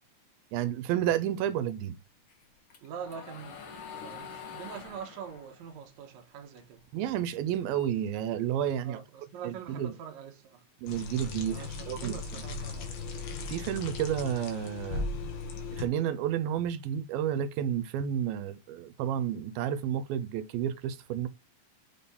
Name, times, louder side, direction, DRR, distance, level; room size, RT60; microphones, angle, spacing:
voice 1, 0.5-2.0 6.9-9.0 9.4-9.9 10.8-12.2 13.5-15.1 15.8-21.3, right 10 dB, 85° right, 2.5 m, -31 dB
sound 1, 2.3-6.8 7.2-8.7, left 6 dB, 70° left, 1.3 m, -46 dB
voice 2, 2.8-3.7 4.0-6.8 8.8-10.7 11.5-13.0, right 7 dB, 65° right, 1.9 m, -44 dB
sound 2, 10.9-15.9, left 4 dB, 85° left, 3.3 m, -37 dB
7.3 x 4.2 x 3.5 m
omnidirectional pair, 4.2 m